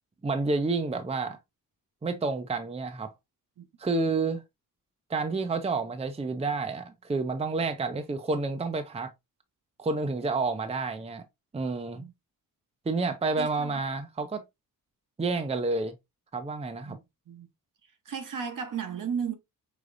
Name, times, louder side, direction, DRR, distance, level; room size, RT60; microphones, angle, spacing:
voice 1, 0.2-1.4 2.0-3.1 3.8-4.4 5.1-9.1 9.8-11.2 11.5-12.0 12.9-14.4 15.2-15.9 16.3-17.0, right 3 dB, 15° right, 0.6 m, -29 dB
voice 2, 13.4-13.7 16.9-17.0 17.3-17.5 18.1-19.3, right 7 dB, 60° right, 1.0 m, -34 dB
5.0 x 3.7 x 2.5 m
cardioid pair, 110°, 36 cm